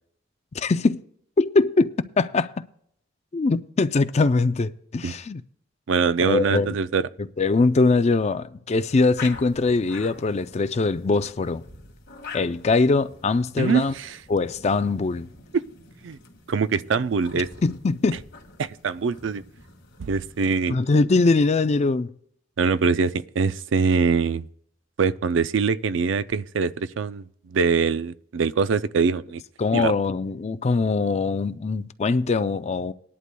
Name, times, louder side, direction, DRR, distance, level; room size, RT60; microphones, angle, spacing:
voice 1, 0.5-1.0 1.4-2.6 3.3-5.4 6.2-6.8 7.4-11.6 12.3-13.9 14.3-15.3 17.6-18.2 20.7-22.1 29.6-32.9, left 3 dB, 35° left, 0.4 m, -22 dB
voice 2, 5.9-7.0 13.6-14.2 15.5-15.6 16.0-16.2 16.5-17.5 18.6-19.4 20.0-20.8 22.6-24.5 25.0-29.4 29.7-29.9, right 5 dB, 65° right, 0.4 m, -23 dB
sound 1, 8.8-20.6, left 4 dB, 55° left, 1.9 m, -45 dB
19.0 x 11.0 x 2.2 m
head